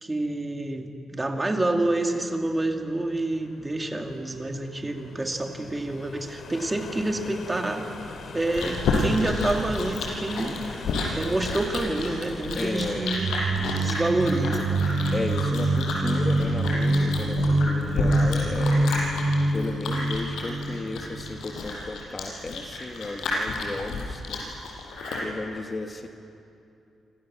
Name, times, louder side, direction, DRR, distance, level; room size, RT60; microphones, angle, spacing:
voice 1, 0.0-7.9 8.3-10.6 11.1-13.3 13.6-14.7, right 2 dB, 15° right, 3 dB, 2.5 m, -28 dB
sound 1, 2.2-20.5, left 4 dB, 55° left, 2.9 m, -44 dB
Chewing mastication, 8.0-25.3, left 3 dB, 85° left, 7.5 m, -31 dB
voice 2, 12.5-13.1 15.1-18.9 19.5-24.5 25.2-26.1, left 2 dB, 25° left, 4 dB, 1.6 m, -34 dB
sound 2, 13.2-21.3, right 2 dB, 60° right, 3.2 m, -25 dB
29.5 x 26.5 x 7.5 m, 2.6 s
cardioid pair, 130°, 0 cm